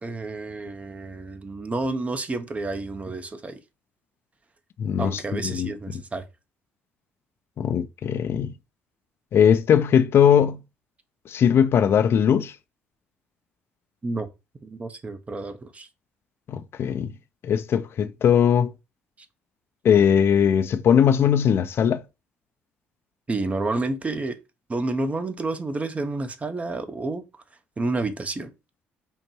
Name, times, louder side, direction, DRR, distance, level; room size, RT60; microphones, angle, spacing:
voice 1, 0.0-3.6 5.0-6.2 14.0-14.3 14.6-15.9 23.3-24.4 24.7-27.2 27.8-28.5, right 2 dB, 25° right, 0.7 m, -29 dB
voice 2, 4.8-5.7 7.6-8.5 9.3-10.6 11.3-12.5 16.5-17.1 17.4-18.7 19.8-22.0, left 8 dB, 55° left, 0.4 m, -20 dB
5.3 x 2.2 x 3.0 m
hypercardioid pair, 55°, 5 cm